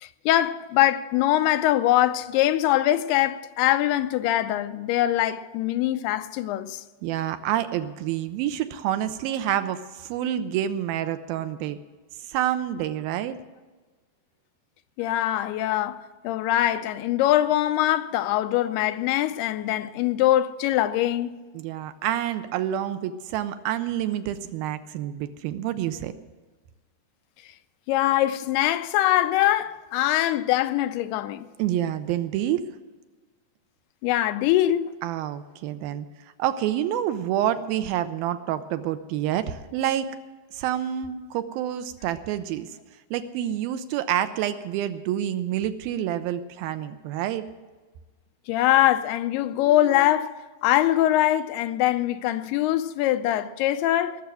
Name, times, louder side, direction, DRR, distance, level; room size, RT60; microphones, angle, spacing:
voice 1, 0.0-6.8 15.0-21.4 27.9-31.5 34.0-34.9 48.5-50.4 50.6-54.2, left 13 dB, 90° left, 2.7 m, -23 dB
voice 2, 7.0-11.8 12.2-13.4 21.5-26.1 31.6-32.7 35.0-36.1 36.4-40.1 40.5-42.7 43.1-47.4, right 11 dB, 80° right, 2.3 m, -28 dB
19.0 x 7.0 x 7.6 m
omnidirectional pair, 4.5 m